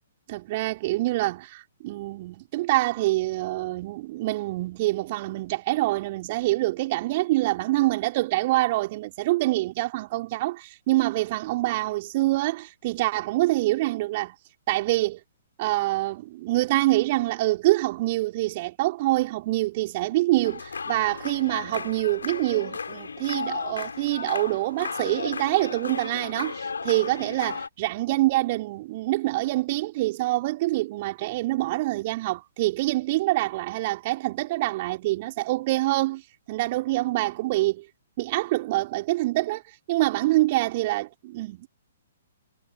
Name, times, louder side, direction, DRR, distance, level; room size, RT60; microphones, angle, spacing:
voice 1, 0.3-14.3 14.7-15.2 15.6-36.2 36.5-37.8 38.2-39.6 39.9-41.7, right 18 dB, 40° right, 5.0 m, -25 dB
sound 1, 20.4-27.7, left 5 dB, 70° left, 4.9 m, -34 dB
figure-of-eight pair, 120°, 0 cm